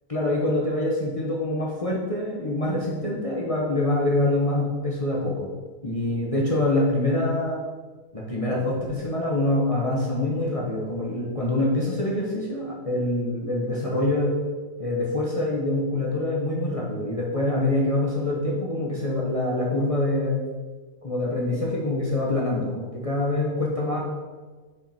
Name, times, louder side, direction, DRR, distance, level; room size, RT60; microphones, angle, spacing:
voice 1, 0.1-5.5 5.8-7.6 8.1-14.3 14.8-20.4 21.0-24.0, left 2 dB, 30° left, -4 dB, 1.2 m, -25 dB
6.8 x 5.1 x 4.4 m, 1.4 s
omnidirectional pair, 1.2 m